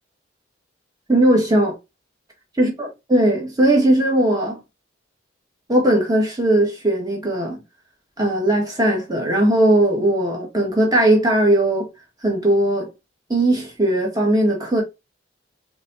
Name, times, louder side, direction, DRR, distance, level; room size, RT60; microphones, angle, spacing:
voice 1, 1.1-1.7 2.6-4.6 5.7-7.6 8.2-11.9 12.2-12.9 13.3-14.8, right 1 dB, 20° right, 1.6 m, -18 dB
4.8 x 3.5 x 2.8 m
head